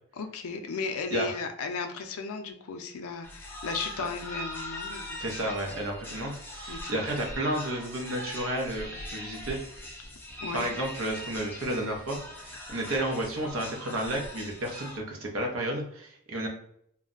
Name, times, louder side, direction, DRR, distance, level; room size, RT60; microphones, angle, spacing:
voice 1, 0.1-5.2 6.7-7.0 10.4-10.7, left 4 dB, 75° left, 5 dB, 0.4 m, -35 dB
sound 1, 3.2-15.0, left 1 dB, 10° left, 0.4 m, -41 dB
voice 2, 5.2-9.6 10.5-16.5, right 1 dB, 60° right, 1 dB, 0.7 m, -32 dB
2.3 x 2.1 x 3.7 m, 0.67 s
head